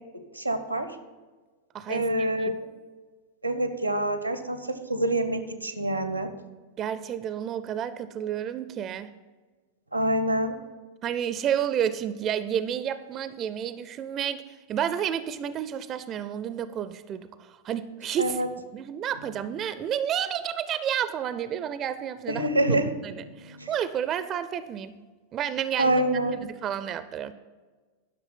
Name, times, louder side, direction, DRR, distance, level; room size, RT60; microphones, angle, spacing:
voice 1, 0.3-0.9 1.9-2.5 3.4-6.3 9.9-10.6 18.2-18.5 22.3-22.9 23.2-23.7 25.8-26.4, right 1 dB, 90° right, 10 dB, 0.8 m, -26 dB
voice 2, 1.7-2.3 6.8-9.1 11.0-14.4 14.7-18.4 18.7-22.5 23.0-24.9 25.3-26.0 26.4-27.3, right 9 dB, 30° right, 14 dB, 0.5 m, -30 dB
11.0 x 6.1 x 5.7 m, 1.4 s
figure-of-eight pair, 90°, 0 cm